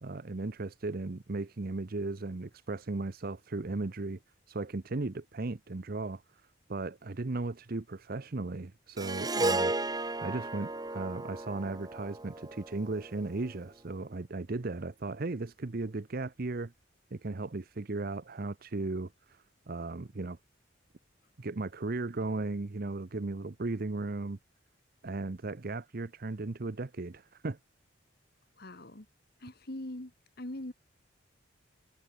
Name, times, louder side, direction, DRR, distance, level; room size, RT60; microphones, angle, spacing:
voice 1, 0.0-4.2 4.5-6.2 6.7-9.7 10.2-16.7 17.1-20.4 21.4-24.4 25.0-27.6, right 3 dB, 50° right, 0.7 m, -36 dB
Harp, 9.0-13.4, right 2 dB, 20° right, 1.7 m, -34 dB
voice 2, 9.3-9.7 28.6-29.1 29.4-30.1 30.4-30.7, left 1 dB, 50° left, 2.1 m, -42 dB
head